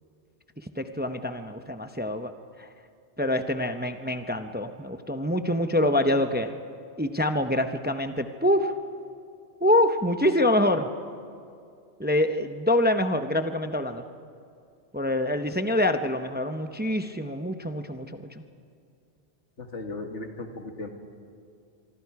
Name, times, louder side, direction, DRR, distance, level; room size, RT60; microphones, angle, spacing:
voice 1, 0.8-2.3 2.6-2.7 3.2-6.5 7.0-8.7 9.6-10.9 12.0-14.0 14.9-18.3, left 1 dB, 10° right, 7 dB, 0.7 m, -25 dB
voice 2, 19.6-20.9, left 2 dB, 85° left, 4 dB, 2.1 m, -36 dB
24.5 x 24.5 x 4.8 m, 2.4 s
omnidirectional pair, 1.2 m